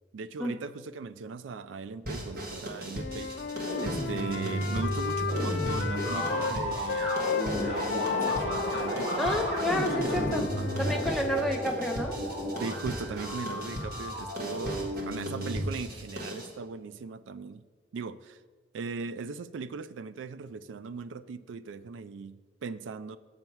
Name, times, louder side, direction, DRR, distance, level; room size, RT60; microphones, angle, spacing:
voice 1, 0.1-3.4 3.8-7.2 7.5-9.3 9.9-10.3 10.6-10.8 11.5-11.7 12.6-17.6 17.9-18.4 18.7-23.2, right 5 dB, 85° right, 15 dB, 0.4 m, -39 dB
sound 1, 2.0-16.5, equal, 55° right, 1.5 m, -39 dB
Wind instrument woodwind instrument, 2.9-6.5 6.9-11.2, left 6 dB, 60° left, 0.4 m, -34 dB
sound 2, 3.6-15.7, equal, 70° right, 1.9 m, -33 dB
voice 2, 9.2-10.5 10.8-12.1, equal, ahead, 1 dB, 0.5 m, -30 dB
7.0 x 6.7 x 4.6 m, 1.4 s
head